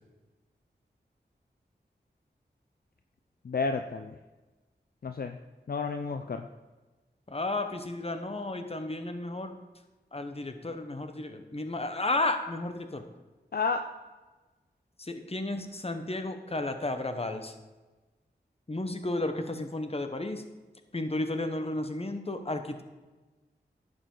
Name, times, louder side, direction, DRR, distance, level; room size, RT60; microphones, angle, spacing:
voice 1, 3.4-4.2 5.0-5.4 5.7-6.5 13.5-13.9, left 4 dB, 55° left, 7 dB, 0.5 m, -31 dB
voice 2, 7.3-9.5 10.1-13.0 15.0-17.5 18.7-20.4 20.9-22.8, left 2 dB, 35° left, 7 dB, 1.1 m, -33 dB
11.0 x 7.9 x 3.9 m, 1.2 s
cardioid pair, 45°, 18 cm